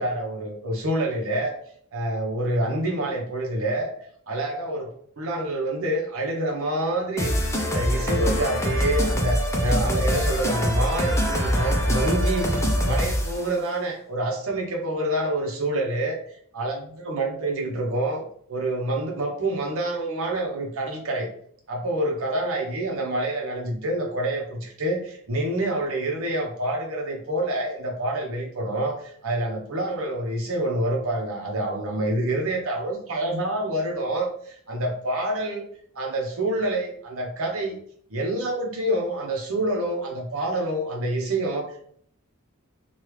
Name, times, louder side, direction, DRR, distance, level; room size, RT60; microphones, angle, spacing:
voice 1, 0.0-1.6 1.9-3.9 4.3-4.9 5.2-7.3 7.7-21.3 21.7-35.6 35.9-37.8 38.1-41.9, right 1 dB, 65° right, 0 dB, 0.8 m, -27 dB
sound 1, 7.2-13.5, equal, 15° left, 0.5 m, -24 dB
3.3 x 2.3 x 3.1 m, 0.64 s
head